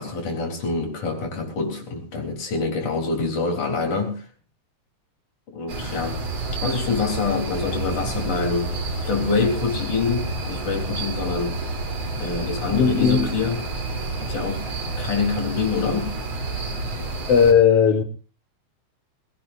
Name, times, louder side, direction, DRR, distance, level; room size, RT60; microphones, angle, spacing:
voice 1, 0.0-4.3 5.5-6.2 6.6-8.8 9.0-11.6 12.2-13.6 14.2-14.7 15.0-16.1, left 4 dB, 90° left, 5.4 m, -26 dB
sound 1, 5.7-17.5, right 2 dB, 55° right, 4.6 m, -29 dB
voice 2, 12.7-13.3 17.3-18.0, left 7 dB, 60° left, 2.2 m, -16 dB
21.5 x 17.5 x 2.7 m
omnidirectional pair, 3.4 m